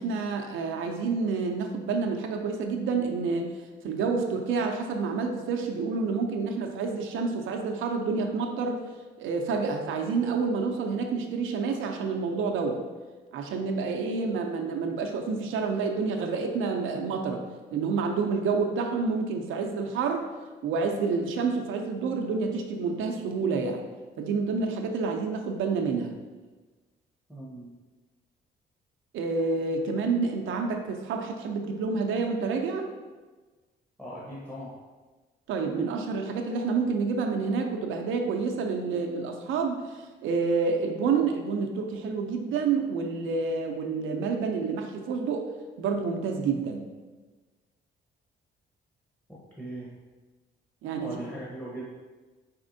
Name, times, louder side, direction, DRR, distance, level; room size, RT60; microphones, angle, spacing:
voice 1, 0.0-3.5 3.8-8.8 9.2-12.8 13.3-17.4 17.7-20.3 20.6-23.8 24.2-26.1 29.1-32.9 35.5-45.5 45.8-46.9 50.8-51.2, right 4 dB, 80° right, 3 dB, 0.6 m, -28 dB
voice 2, 27.3-27.7 34.0-34.8 49.3-49.9 51.0-51.8, right 1 dB, 5° left, -6 dB, 0.9 m, -39 dB
4.3 x 4.1 x 2.6 m, 1.3 s
cardioid pair, 90°, 20 cm